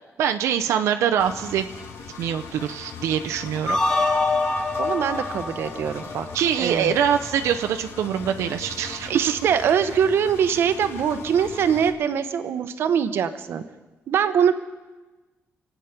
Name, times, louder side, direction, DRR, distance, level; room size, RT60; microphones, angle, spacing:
voice 1, 0.2-1.7 2.2-3.8 6.3-9.1, right 9 dB, 85° right, 6 dB, 0.7 m, -24 dB
Engine, 1.2-11.9, left 5 dB, 70° left, 1.8 m, -40 dB
sound 1, 3.7-6.8, left 3 dB, 15° left, 1.4 m, -25 dB
voice 2, 4.8-6.3 6.6-6.9 9.1-13.6 14.1-14.5, right 8 dB, 55° right, 10 dB, 0.9 m, -23 dB
27.0 x 9.2 x 5.9 m, 1.2 s
cardioid pair, 180°, 5 cm